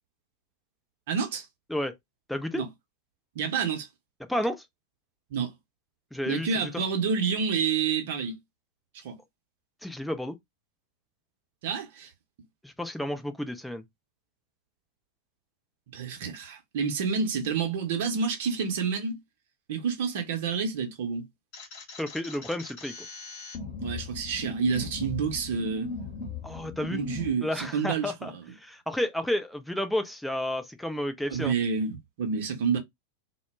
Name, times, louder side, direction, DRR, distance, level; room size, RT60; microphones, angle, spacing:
voice 1, 1.1-1.5 2.5-2.7 3.3-3.9 5.3-5.5 6.2-8.4 8.9-9.2 11.6-12.1 15.9-19.2 19.7-21.3 23.8-25.9 26.9-28.4 31.3-32.8, right 6 dB, 55° right, 0.8 m, -29 dB
voice 2, 2.3-2.6 4.3-4.6 6.1-6.5 9.8-10.4 12.6-13.8 22.0-22.9 26.4-27.0 27.4-31.5, left 1 dB, ahead, 0.4 m, -31 dB
sound 1, 21.5-27.3, left 4 dB, 45° left, 0.8 m, -38 dB
2.1 x 2.1 x 3.3 m
figure-of-eight pair, 90°, 0 cm